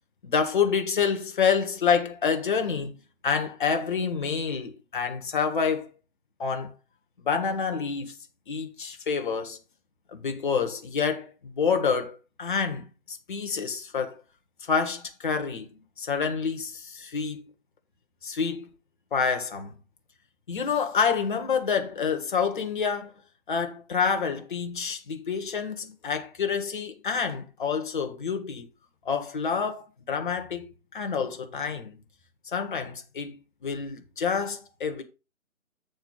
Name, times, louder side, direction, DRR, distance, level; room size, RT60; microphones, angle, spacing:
voice 1, 0.2-3.0 3.2-5.9 6.4-6.7 7.2-8.2 8.5-9.6 10.1-14.2 14.6-17.4 18.2-18.7 19.1-19.7 20.5-23.1 23.5-28.7 29.0-30.7 30.9-32.0 32.4-35.0, left 6 dB, 35° left, 1.4 m, -28 dB
8.1 x 4.4 x 5.7 m
figure-of-eight pair, 145°, 42 cm